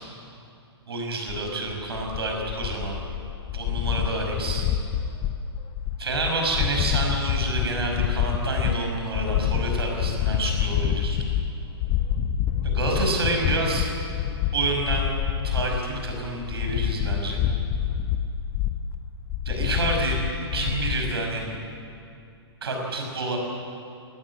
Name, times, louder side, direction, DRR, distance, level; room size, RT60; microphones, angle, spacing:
voice 1, 0.9-3.0 3.5-4.7 6.0-11.2 12.6-13.9 14.5-15.2 15.4-17.4 19.4-21.6 22.6-23.4, right 2 dB, 65° right, 1 dB, 5.7 m, -28 dB
sound 1, 1.3-21.1, left 9 dB, 30° left, 1.1 m, -27 dB
19.5 x 15.0 x 9.9 m, 2.6 s
figure-of-eight pair, 115°, 14 cm